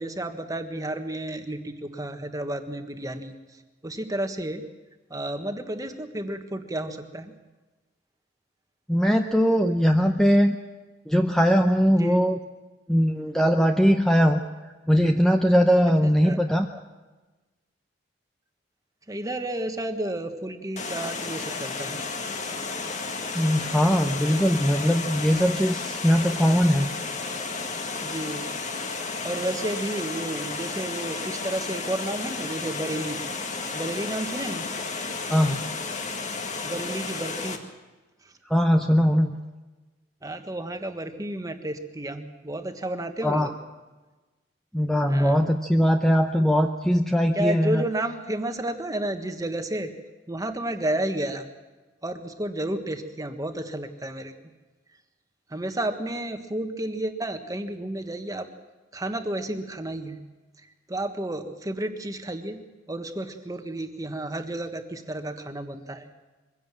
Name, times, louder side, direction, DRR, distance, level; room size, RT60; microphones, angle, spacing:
voice 1, 0.0-4.6 5.1-7.3 11.9-12.2 16.0-16.4 19.1-22.0 28.0-28.5 28.8-28.9 29.2-33.2 33.7-34.7 36.6-37.6 40.2-43.5 45.1-45.5 47.3-49.9 50.3-51.5 52.0-54.3 55.5-58.5 58.9-60.2 60.9-62.6 62.9-66.1, right 1 dB, 20° right, 7 dB, 1.4 m, -31 dB
voice 2, 8.9-10.6 11.1-12.4 12.9-14.4 14.9-16.8 23.3-26.9 35.3-35.6 38.5-39.4 43.2-43.5 44.7-47.8, equal, 5° left, 4 dB, 0.7 m, -20 dB
Water, 20.8-37.6, left 4 dB, 40° left, 1.8 m, -32 dB
23.0 x 16.5 x 7.5 m, 1.2 s
head